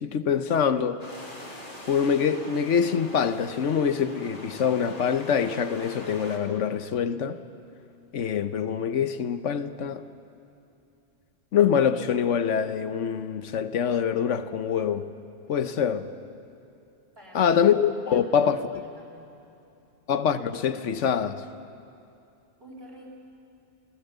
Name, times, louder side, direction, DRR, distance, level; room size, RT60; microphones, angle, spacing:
voice 1, 0.0-1.1 1.9-7.4 8.1-10.0 11.5-15.0 15.5-16.1 17.3-18.6 20.1-21.4, left 7 dB, 75° left, 1.2 m, -25 dB
sound 1, 1.0-6.4, left 1 dB, 40° left, 3.2 m, -43 dB
voice 2, 17.2-17.5 18.1-19.3 22.6-23.1, equal, 50° right, 5.5 m, -48 dB
29.0 x 17.0 x 8.0 m
omnidirectional pair, 1.3 m